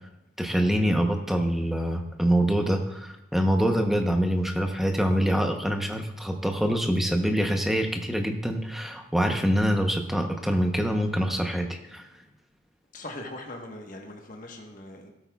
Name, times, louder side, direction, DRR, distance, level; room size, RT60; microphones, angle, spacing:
voice 1, 0.4-12.0, equal, ahead, 3 dB, 0.8 m, -25 dB
voice 2, 12.9-15.1, left 1 dB, 40° left, 2 dB, 1.2 m, -40 dB
16.5 x 8.5 x 2.3 m, 0.92 s
head